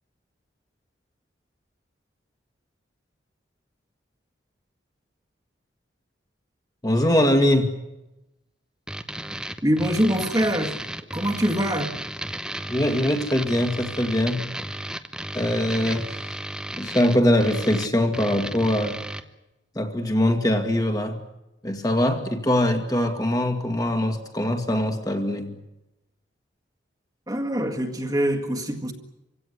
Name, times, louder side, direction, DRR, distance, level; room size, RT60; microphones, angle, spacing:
voice 1, 6.8-7.7 12.7-14.4 15.3-16.2 16.8-19.0 19.8-21.2 21.6-25.5, left 1 dB, 20° left, 2.1 m, -22 dB
sound 1, 8.9-19.2, right 1 dB, 5° right, 0.9 m, -34 dB
voice 2, 9.6-10.8 11.1-12.0 27.3-28.9, equal, 20° right, 1.9 m, -24 dB
26.0 x 17.0 x 9.7 m
head